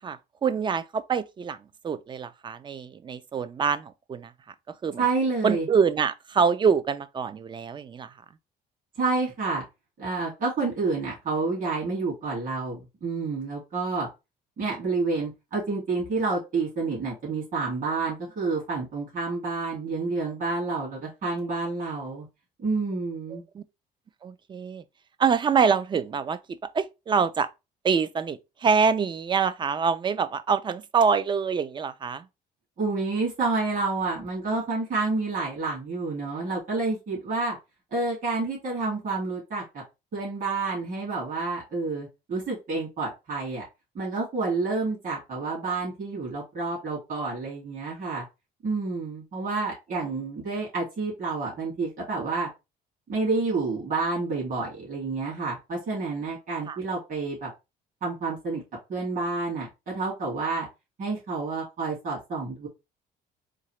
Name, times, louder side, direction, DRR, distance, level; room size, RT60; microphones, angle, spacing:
voice 1, 0.0-1.6 1.8-4.3 4.8-5.0 5.4-8.1 23.3-23.6 24.2-24.8 25.2-27.5 27.8-32.3 56.7-56.8, right 6 dB, 30° right, 0.4 m, -25 dB
voice 2, 5.0-5.7 9.0-9.6 10.0-14.1 14.6-22.3 22.6-23.4 32.8-37.6 37.9-39.8 40.1-43.6 43.9-48.2 48.6-52.5 53.1-57.5 58.0-58.6 58.9-60.7 61.0-62.7, right 3 dB, 50° right, 2.3 m, -29 dB
3.8 x 2.7 x 3.1 m
cardioid pair, 110°, 17 cm